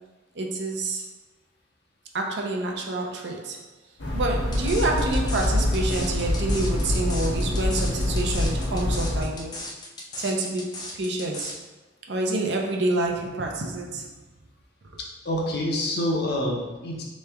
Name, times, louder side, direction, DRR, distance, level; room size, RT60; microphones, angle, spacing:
voice 1, 0.3-1.1 2.1-3.6 4.1-9.6 10.2-11.6 12.1-14.1, right 2 dB, 65° right, 1 dB, 0.6 m, -28 dB
sound 1, 4.0-9.2, left 1 dB, 85° left, 0.9 m, -25 dB
sound 2, 4.5-11.6, left 2 dB, 20° left, 0.5 m, -37 dB
voice 2, 15.2-17.0, left 1 dB, 60° left, -1 dB, 0.7 m, -26 dB
3.3 x 3.1 x 3.4 m, 1.2 s
head